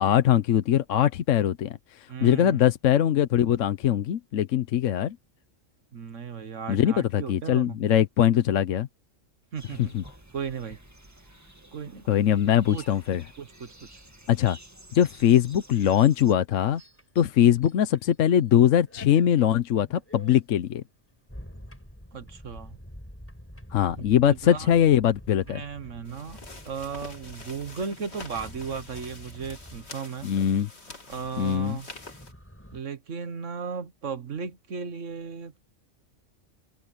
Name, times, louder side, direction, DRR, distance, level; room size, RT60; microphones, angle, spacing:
voice 1, 0.0-5.2 6.7-8.9 9.8-10.0 12.1-13.2 14.3-14.6 14.9-16.8 17.2-20.8 23.7-25.6 30.2-30.7 31.4-31.8, left 10 dB, 75° left, 1.1 m, -22 dB
voice 2, 2.1-2.6 5.9-7.8 9.5-10.0 10.3-10.8 11.7-12.3 12.7-12.8 13.4-14.0 22.1-22.8 24.0-24.7 25.5-26.4 26.6-30.3 31.1-31.9 32.7-35.6, right 6 dB, 70° right, 1.7 m, -36 dB
sound 1, 9.6-16.3, right 1 dB, 10° right, 2.0 m, -51 dB
sound 2, 16.5-18.5 18.8-32.8, equal, 10° left, 5.5 m, -48 dB
sound 3, 26.0-32.3, left 3 dB, 55° left, 3.1 m, -46 dB
omnidirectional pair, 1.4 m